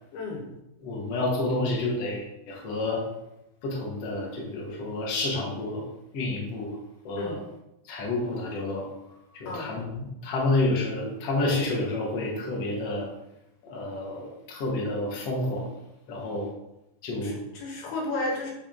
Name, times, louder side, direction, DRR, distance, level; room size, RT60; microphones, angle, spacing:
voice 1, 0.1-0.5 7.2-7.4 9.5-9.8 17.2-18.5, left 2 dB, 85° left, 0 dB, 3.3 m, -33 dB
voice 2, 0.8-3.0 3.6-5.8 6.1-6.8 7.0-7.4 7.9-13.1 13.6-15.7 16.1-16.5 17.0-17.4, left 2 dB, 50° left, -3 dB, 2.2 m, -29 dB
10.5 x 3.7 x 3.8 m, 0.86 s
omnidirectional pair, 4.4 m